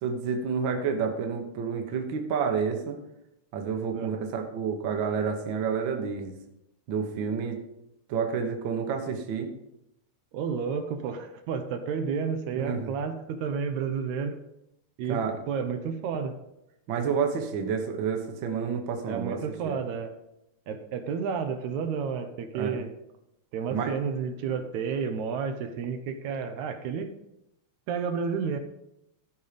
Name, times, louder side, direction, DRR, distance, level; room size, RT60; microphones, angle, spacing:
voice 1, 0.0-3.0 3.5-6.3 6.9-7.6 8.1-9.5 12.5-12.9 15.1-15.4 16.9-19.8 22.5-22.8 23.7-24.0, right 6 dB, 55° right, 4 dB, 1.5 m, -29 dB
voice 2, 10.3-14.4 15.0-15.2 15.5-16.4 19.1-20.1 20.7-22.9 23.5-27.1 27.9-28.6, right 6 dB, 80° right, 8 dB, 2.1 m, -31 dB
13.5 x 5.4 x 5.1 m, 0.86 s
omnidirectional pair, 3.3 m